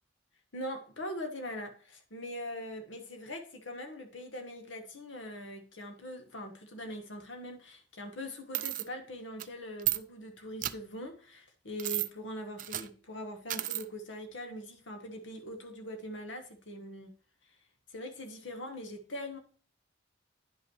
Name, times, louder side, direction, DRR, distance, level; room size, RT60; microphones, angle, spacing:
voice 1, 0.5-17.1 17.9-19.4, left 1 dB, 65° left, 1.2 m, -42 dB
sound 1, 8.5-8.8 9.4-9.5 9.8-10.0 10.6-10.7 11.8-12.1 12.6-12.9 13.5-13.8, right 15 dB, 45° right, 0.3 m, -32 dB
10.0 x 5.3 x 3.0 m
head